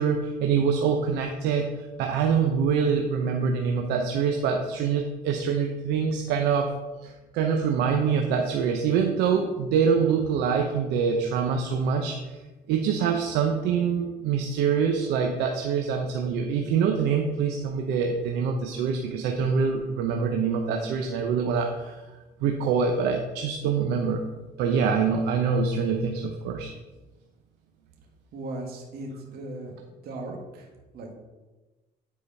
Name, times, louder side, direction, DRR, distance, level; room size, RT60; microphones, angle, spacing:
voice 1, 0.0-1.7 2.0-6.7 7.0-12.4 12.7-22.0 22.4-24.2 24.6-26.7, right 6 dB, 90° right, 3 dB, 0.9 m, -25 dB
voice 2, 28.3-29.8 30.0-31.2, right 2 dB, 65° right, 1 dB, 1.8 m, -38 dB
9.4 x 5.0 x 5.5 m, 1.2 s
cardioid pair, 110°, 17 cm